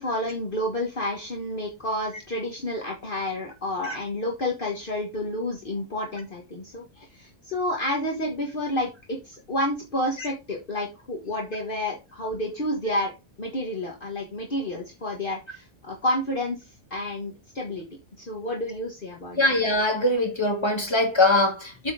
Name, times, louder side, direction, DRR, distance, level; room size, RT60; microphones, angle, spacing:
voice 1, 0.0-13.1 13.4-16.6 16.9-17.8 18.2-19.5, left 1 dB, 45° left, 1.6 m, -30 dB
voice 2, 19.4-21.9, left 2 dB, 20° left, 2.2 m, -22 dB
8.1 x 4.3 x 4.9 m
omnidirectional pair, 1.3 m